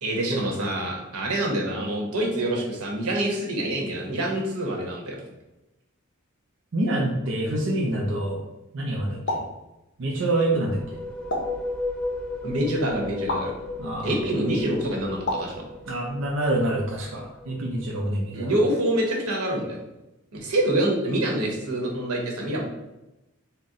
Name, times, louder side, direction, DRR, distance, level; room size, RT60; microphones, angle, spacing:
voice 1, 0.0-5.2 12.4-13.5 14.0-15.5 18.3-19.8 20.4-22.6, right 1 dB, 90° right, -1 dB, 1.0 m, -26 dB
voice 2, 6.7-8.4 8.7-9.4 10.0-10.8 13.8-14.1 15.9-18.6, right 1 dB, 60° right, -2 dB, 0.5 m, -26 dB
sound 1, 9.3-9.6 11.3-11.6 13.3-13.5 15.3-15.6, left 1 dB, 55° left, 0.7 m, -28 dB
sound 2, 10.6-18.2, left 2 dB, 5° left, 0.4 m, -35 dB
4.0 x 2.1 x 3.6 m, 0.95 s
head